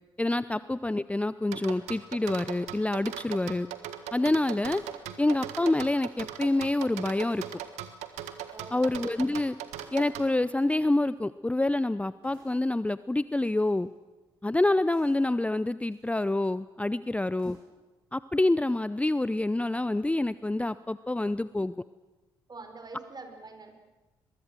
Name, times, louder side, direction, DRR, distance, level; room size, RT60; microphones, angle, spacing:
voice 1, 0.2-3.7 4.1-4.8 5.2-7.4 8.7-9.6 9.9-13.9 14.4-17.6 18.1-21.7, left 2 dB, 10° left, 16 dB, 0.7 m, -27 dB
sound 1, 1.5-10.3, right 11 dB, 70° right, 1.5 m, -39 dB
sound 2, 3.4-3.5 4.7-5.2 5.6-6.1 6.4-6.5 7.2-7.7 8.2-8.7 9.7-10.2 10.5-11.1 12.2-12.6 13.2-13.9 14.9-15.3 15.8-16.3 17.4-17.9 18.2-18.3, left 2 dB, 90° left, 7.5 m, -60 dB
voice 2, 8.5-8.9 17.0-17.1 22.5-23.8, right 3 dB, 35° right, 6 dB, 5.1 m, -45 dB
22.5 x 22.5 x 7.7 m, 1.2 s
hypercardioid pair, 40°, 12 cm